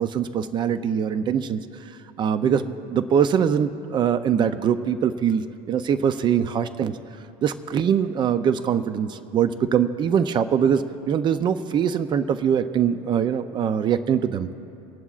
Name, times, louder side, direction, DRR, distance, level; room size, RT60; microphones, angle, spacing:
voice 1, 0.0-1.9 2.2-2.6 2.9-7.0 7.4-14.5, right 8 dB, 35° right, 11 dB, 0.5 m, -23 dB
28.0 x 11.0 x 2.4 m, 2.7 s
cardioid pair, 140°, 14 cm